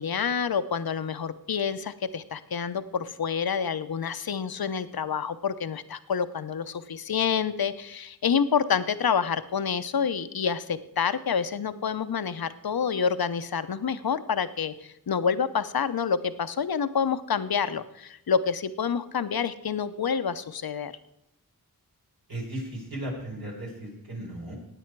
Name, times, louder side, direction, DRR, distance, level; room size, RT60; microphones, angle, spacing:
voice 1, 0.0-20.9, left 6 dB, 70° left, 12 dB, 0.7 m, -28 dB
voice 2, 22.3-24.5, right 1 dB, 70° right, -2 dB, 4.7 m, -36 dB
17.0 x 9.1 x 4.6 m, 0.81 s
wide cardioid pair, 50°, 37 cm